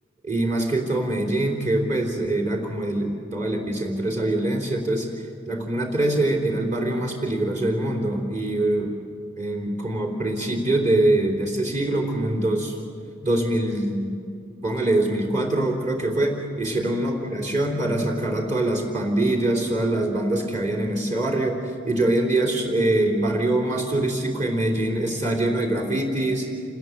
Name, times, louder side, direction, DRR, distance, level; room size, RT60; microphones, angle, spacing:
voice 1, 0.2-5.1 5.5-8.9 9.4-12.7 13.2-14.1 14.6-21.6 21.9-26.5, right 1 dB, 35° right, 0 dB, 3.6 m, -24 dB
28.0 x 20.0 x 7.9 m, 2.4 s
head